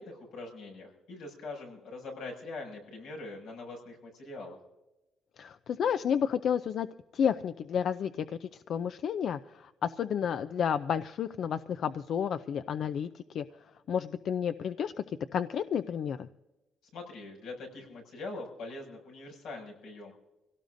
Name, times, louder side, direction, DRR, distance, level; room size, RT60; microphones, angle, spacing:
voice 1, 0.0-4.6 16.9-20.1, left 3 dB, 90° left, 0 dB, 6.4 m, -43 dB
voice 2, 5.4-6.9 7.1-13.4 13.9-14.9 15.3-16.3, left 8 dB, 60° left, 12 dB, 0.5 m, -31 dB
25.5 x 17.5 x 2.6 m, 1.0 s
cardioid pair, 115°, 0 cm